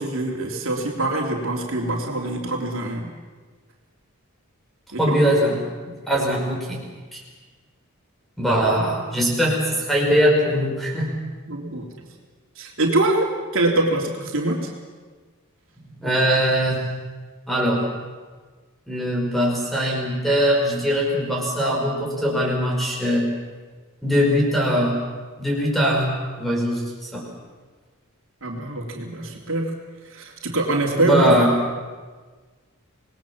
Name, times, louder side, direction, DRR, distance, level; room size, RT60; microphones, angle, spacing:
voice 1, 0.0-3.1 4.9-5.2 11.5-11.9 12.6-14.7 28.4-29.7 30.1-31.4, right 2 dB, 65° right, 0 dB, 3.3 m, -24 dB
voice 2, 5.0-5.6 5.9-6.8 7.1-7.2 8.4-11.1 16.0-16.8 17.5-17.8 18.9-23.3 24.0-25.0 25.4-27.2 31.0-31.5, equal, ahead, -2 dB, 5.8 m, -21 dB
26.5 x 20.0 x 7.4 m, 1.4 s
head